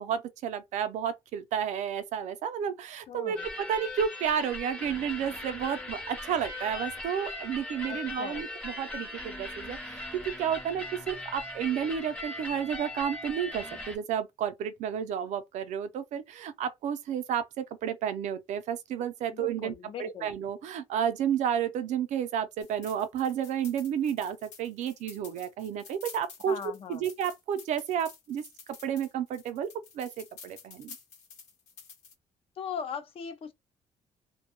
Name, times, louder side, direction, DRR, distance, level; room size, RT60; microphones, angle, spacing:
voice 1, 0.0-28.4 28.8-31.0, right 8 dB, 80° right, 0.5 m, -31 dB
voice 2, 3.1-3.4 7.9-8.5 19.3-20.3 26.5-27.1 32.6-33.5, left 7 dB, 50° left, 0.5 m, -39 dB
sound 1, 3.4-14.0, left 2 dB, 10° left, 0.7 m, -39 dB
sound 2, 22.6-32.1, left 6 dB, 75° left, 0.9 m, -50 dB
2.2 x 2.1 x 2.9 m
cardioid pair, 125°, 12 cm